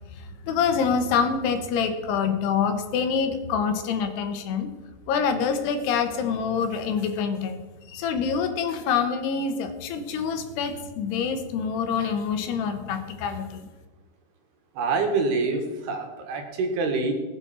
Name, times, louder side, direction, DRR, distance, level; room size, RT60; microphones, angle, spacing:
voice 1, 0.0-4.7 5.1-13.7, left 6 dB, 90° left, 7 dB, 3.3 m, -26 dB
voice 2, 14.8-17.1, right 3 dB, 75° right, 3 dB, 3.8 m, -26 dB
19.5 x 8.5 x 4.4 m, 1.3 s
omnidirectional pair, 4.6 m